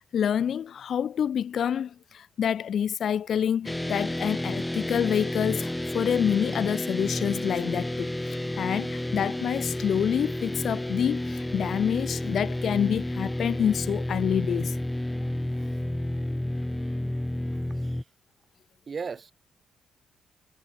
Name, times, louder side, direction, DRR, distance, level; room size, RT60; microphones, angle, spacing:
voice 1, 0.1-14.8, left 8 dB, 65° left, 0.5 m, -27 dB
sound 1, 3.7-18.0, left 1 dB, 10° left, 1.0 m, -31 dB
voice 2, 17.7-18.0 18.9-19.3, right 5 dB, 45° right, 1.3 m, -36 dB
cardioid pair, 65°, 0 cm